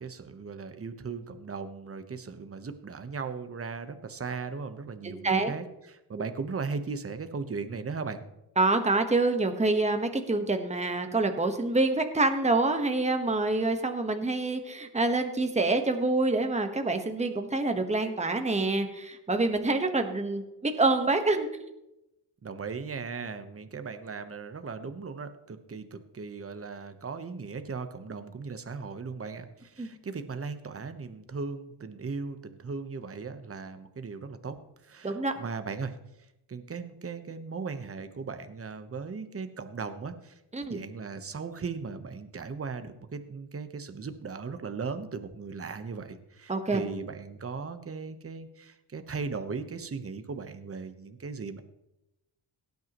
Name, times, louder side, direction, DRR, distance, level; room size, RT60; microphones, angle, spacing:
voice 1, 0.0-8.2 22.4-34.6 34.8-36.0 36.5-51.6, right 5 dB, 30° right, 9 dB, 1.1 m, -37 dB
voice 2, 5.0-5.5 8.6-21.5 29.8-29.9 35.0-35.3 40.5-40.8 46.5-46.8, right 2 dB, 15° right, 6 dB, 1.3 m, -26 dB
17.5 x 9.4 x 3.1 m, 0.89 s
cardioid pair, 85°, 43 cm